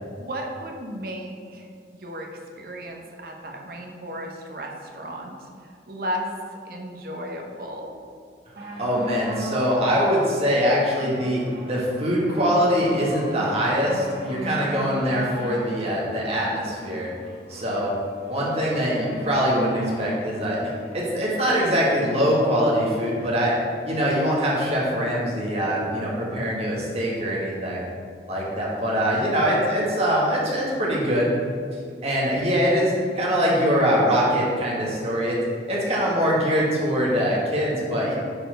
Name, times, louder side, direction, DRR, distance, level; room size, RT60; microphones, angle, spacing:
voice 1, 0.2-1.7 2.0-6.3 6.6-8.0, equal, 55° right, 1 dB, 0.9 m, -35 dB
sound 1, 8.6-22.1 22.9-23.0, right 1 dB, 70° right, 1.4 m, -38 dB
voice 2, 8.8-17.1 17.5-17.9 18.3-23.5 23.8-27.8 28.3-31.3 32.0-35.4 35.7-38.1, equal, 35° right, -6 dB, 1.6 m, -23 dB
6.9 x 4.3 x 5.1 m, 2.3 s
head